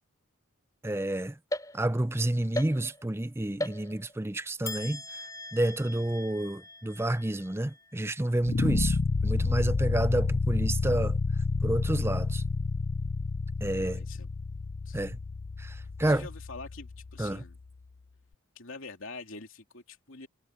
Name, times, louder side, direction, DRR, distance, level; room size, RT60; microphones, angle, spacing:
voice 1, 0.8-1.4 1.7-5.0 5.5-11.2 11.6-12.4 13.6-14.0 14.9-15.2 15.6-16.3 17.2-17.4, right 1 dB, 10° right, 0.5 m, -29 dB
sound 1, 1.5-2.2 2.5-3.2 3.6-4.3 4.6-8.1, left 1 dB, 15° left, 3.5 m, -39 dB
sound 2, 8.5-17.6, left 4 dB, 45° left, 0.5 m, -30 dB
voice 2, 13.6-14.3 14.8-15.0 16.0-17.6 18.5-20.3, left 3 dB, 70° left, 2.7 m, -45 dB
head